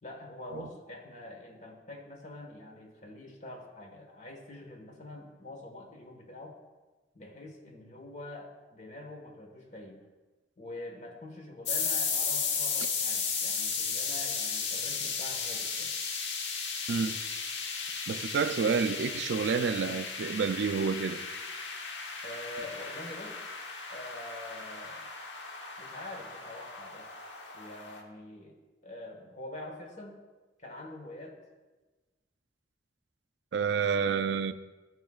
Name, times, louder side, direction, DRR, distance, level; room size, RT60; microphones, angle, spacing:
voice 1, 0.0-6.6 7.1-10.0 10.6-15.9 22.2-23.4 23.9-25.1 25.8-27.1 27.5-30.2 30.6-31.4, left 1 dB, 45° left, 1.4 m, -45 dB
sound 1, 11.7-28.0, left 5 dB, 85° left, 1.1 m, -35 dB
voice 2, 16.9-17.2 18.1-21.2 33.5-34.5, right 5 dB, 80° right, 0.4 m, -29 dB
13.5 x 6.2 x 2.4 m
head